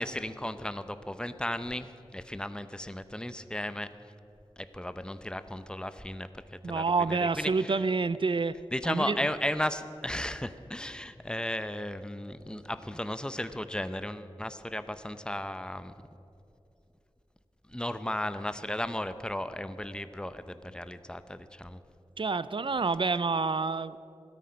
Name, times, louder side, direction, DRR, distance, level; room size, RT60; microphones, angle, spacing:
voice 1, 0.0-3.9 4.6-7.8 8.7-15.9 17.7-21.8, left 1 dB, 10° left, 11 dB, 0.7 m, -35 dB
voice 2, 6.6-8.6 8.8-9.2 22.2-24.0, right 4 dB, 55° right, 16 dB, 0.5 m, -28 dB
16.5 x 13.0 x 5.2 m, 2.8 s
wide cardioid pair, 50°, 10 cm